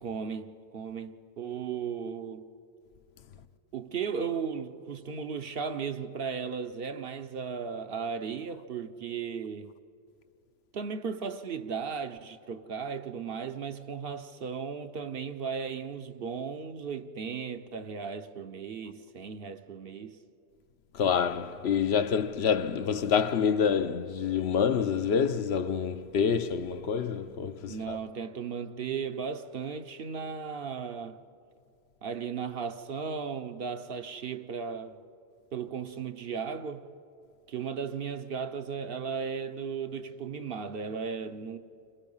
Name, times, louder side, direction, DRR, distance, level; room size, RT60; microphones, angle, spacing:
voice 1, 0.0-2.5 3.7-9.8 10.7-20.2 27.7-31.2 32.0-35.0 35.5-36.9 37.5-41.6, right 6 dB, 60° right, 1.0 m, -36 dB
voice 2, 20.9-28.0, left 7 dB, 75° left, 1.0 m, -27 dB
29.5 x 25.5 x 5.5 m
omnidirectional pair, 1.1 m